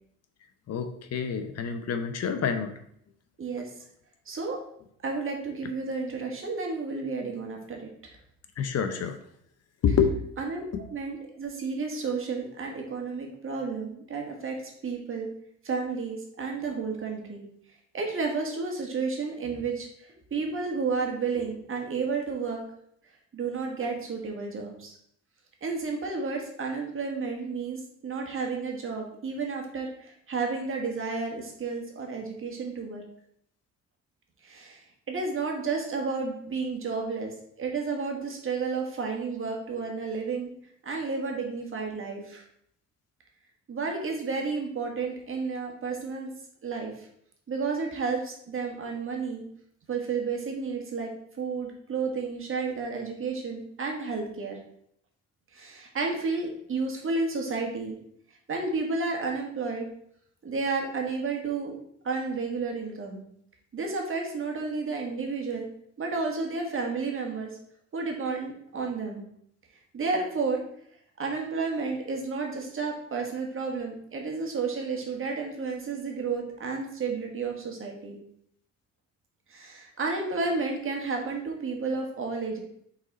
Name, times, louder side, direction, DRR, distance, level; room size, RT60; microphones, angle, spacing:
voice 1, 0.7-2.7 8.6-9.2 9.8-10.3 10.7-10.8, left 6 dB, 55° left, 8 dB, 0.8 m, -27 dB
voice 2, 3.4-3.7 4.2-4.6 5.0-8.2 10.4-15.3 15.6-17.4 17.9-22.6 23.3-24.9 25.6-33.0 34.4-37.3 37.6-40.5 40.8-42.4 43.7-46.3 46.6-47.1 47.5-49.4 49.9-51.1 51.4-54.6 55.5-58.0 58.5-59.9 60.4-61.7 62.0-63.2 63.7-65.7 66.0-67.5 67.9-69.2 69.9-70.6 71.2-78.2 79.5-82.6, right 4 dB, 45° right, 1 dB, 1.7 m, -31 dB
5.9 x 4.1 x 4.0 m, 0.68 s
cardioid pair, 90°, 30 cm